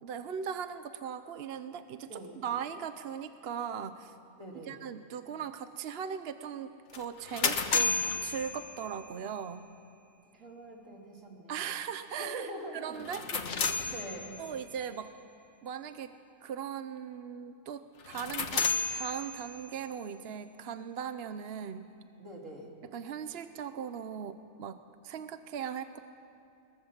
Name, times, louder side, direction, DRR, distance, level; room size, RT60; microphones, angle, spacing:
voice 1, 0.0-4.1 4.7-9.7 11.5-13.3 14.4-15.1 15.6-16.1 16.4-18.7 18.9-21.9 22.9-24.8 25.0-26.0, right 8 dB, 60° right, 11 dB, 0.9 m, -39 dB
voice 2, 2.1-2.4 4.4-4.8 10.3-11.6 12.2-13.0 13.3-13.4 13.9-14.4 22.2-22.7, right 1 dB, 80° right, -1 dB, 3.6 m, -44 dB
sound 1, 6.9-9.2 12.9-14.6 18.0-19.8, left 4 dB, 65° left, 1.5 m, -32 dB
21.5 x 19.0 x 7.3 m, 2.6 s
omnidirectional pair, 1.3 m